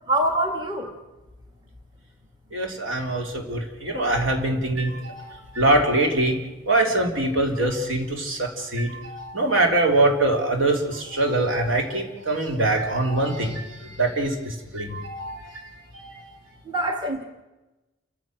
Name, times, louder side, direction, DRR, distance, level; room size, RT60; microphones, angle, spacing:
voice 1, 0.1-0.9 16.6-17.2, right 1 dB, 20° right, 3 dB, 1.6 m, -24 dB
voice 2, 2.5-6.4 6.7-15.6 16.0-16.2, right 2 dB, 70° right, 2 dB, 3.6 m, -23 dB
29.0 x 15.0 x 6.5 m, 1.1 s
head